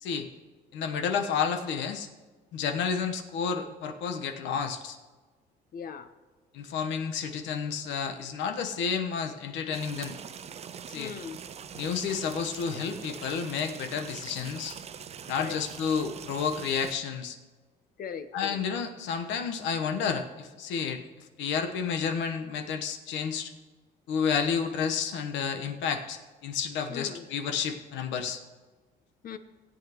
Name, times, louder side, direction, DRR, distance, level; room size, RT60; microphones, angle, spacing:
voice 1, 0.7-2.1 2.5-5.0 6.5-10.1 10.9-11.1 11.7-14.8 15.3-17.4 18.3-21.0 21.4-23.5 24.1-28.4, left 6 dB, 85° left, 6 dB, 1.1 m, -31 dB
voice 2, 5.7-6.1 11.0-11.4 15.4-15.6 18.0-18.6 26.9-27.3 29.2-29.4, left 7 dB, 50° left, 10 dB, 0.8 m, -39 dB
sound 1, 9.7-16.9, right 7 dB, 35° right, 0.5 m, -43 dB
17.0 x 8.4 x 3.0 m, 1.3 s
cardioid pair, 105°, 19 cm